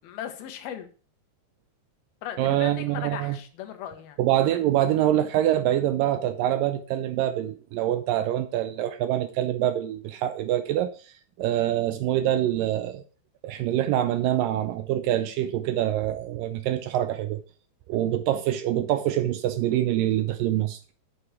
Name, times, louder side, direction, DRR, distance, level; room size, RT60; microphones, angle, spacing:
voice 1, 0.0-0.9 2.2-4.2, left 10 dB, 75° left, 7 dB, 2.9 m, -37 dB
voice 2, 2.4-3.4 4.2-10.9 11.4-13.0 13.4-17.4 17.9-20.8, right 12 dB, 85° right, 11 dB, 2.0 m, -25 dB
8.5 x 8.0 x 4.8 m, 0.38 s
omnidirectional pair, 4.6 m